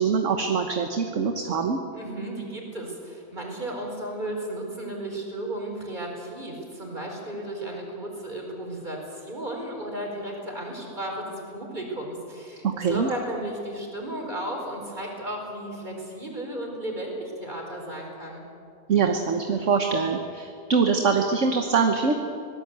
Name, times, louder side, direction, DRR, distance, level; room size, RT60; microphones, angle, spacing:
voice 1, 0.0-1.8 12.6-13.1 18.9-22.1, right 5 dB, 50° right, 4 dB, 1.5 m, -23 dB
voice 2, 1.9-18.4, right 1 dB, 25° right, 1 dB, 4.9 m, -34 dB
24.5 x 18.5 x 8.1 m, 2.6 s
omnidirectional pair, 1.8 m